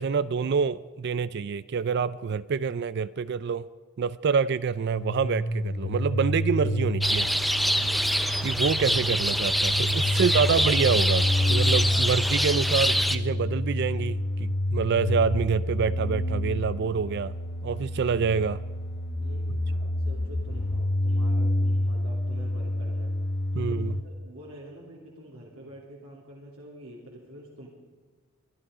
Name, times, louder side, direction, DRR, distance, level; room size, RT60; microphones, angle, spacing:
voice 1, 0.0-3.7 4.0-7.3 8.4-18.6 23.5-24.0, right 5 dB, 50° right, 17 dB, 0.4 m, -27 dB
sound 1, 4.8-24.0, left 1 dB, 50° left, 1.0 m, -28 dB
sound 2, 7.0-13.2, equal, ahead, 0.5 m, -25 dB
voice 2, 7.7-8.1 10.1-10.5 19.2-23.1 23.5-27.7, right 1 dB, 75° right, -3 dB, 2.7 m, -47 dB
23.5 x 11.5 x 4.9 m, 1.5 s
head